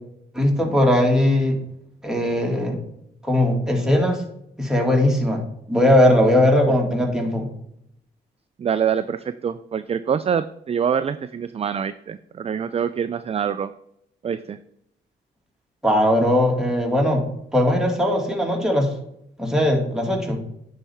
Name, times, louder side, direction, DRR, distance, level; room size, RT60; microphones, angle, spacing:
voice 1, 0.3-1.6 2.0-2.8 3.2-4.2 4.6-7.5 15.8-17.2 17.5-18.9 19.4-20.4, left 1 dB, 5° right, 0 dB, 2.2 m, -19 dB
voice 2, 8.6-13.7 14.2-14.6, right 7 dB, 30° right, 13 dB, 0.3 m, -25 dB
9.7 x 4.3 x 3.6 m, 0.75 s
supercardioid pair, 60°, 20 cm